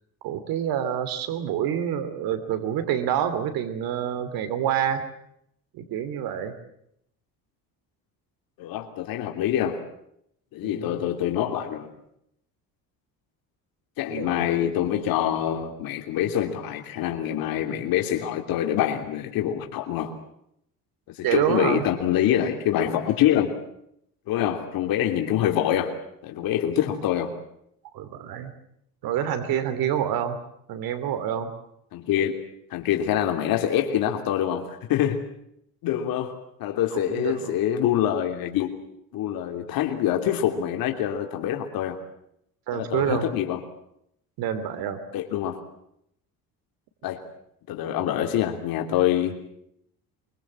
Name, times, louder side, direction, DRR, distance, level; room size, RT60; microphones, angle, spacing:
voice 1, 0.2-5.1 5.7-6.5 10.6-11.0 14.1-14.5 21.2-21.9 27.9-28.5 29.0-30.4 30.7-31.5 36.9-37.5 42.7-43.2 44.4-45.0, right 9 dB, 90° right, 10 dB, 2.9 m, -27 dB
voice 2, 8.6-9.8 10.5-11.9 14.0-20.1 21.1-23.5 24.3-25.9 26.2-27.3 31.9-32.4 32.7-35.2 35.8-36.3 36.6-38.7 39.1-42.0 42.7-43.6 45.1-45.6 47.0-47.2 47.7-49.4, left 11 dB, 85° left, 4 dB, 3.3 m, -25 dB
24.5 x 24.5 x 7.6 m, 0.74 s
cardioid pair, 135°, 34 cm